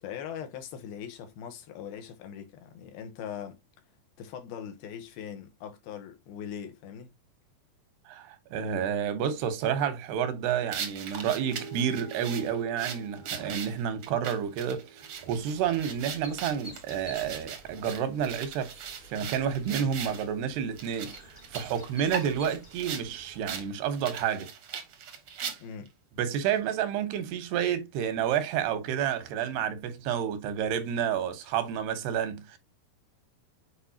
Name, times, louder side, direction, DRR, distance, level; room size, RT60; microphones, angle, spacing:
voice 1, 0.0-3.6 4.2-7.1 25.6-25.9, left 8 dB, 75° left, 2.9 m, -41 dB
voice 2, 8.1-18.8 19.0-21.2 21.5-24.5 26.2-32.6, right 8 dB, 85° right, 3.2 m, -30 dB
sound 1, 10.7-20.3 20.8-23.1 23.5-23.7 23.9-25.9, right 7 dB, 65° right, 1.4 m, -39 dB
sound 2, 11.2-16.1, right 3 dB, 50° left, 1.4 m, -48 dB
sound 3, 15.1-23.6, left 1 dB, 25° left, 1.1 m, -51 dB
8.0 x 4.9 x 2.8 m
omnidirectional pair, 4.5 m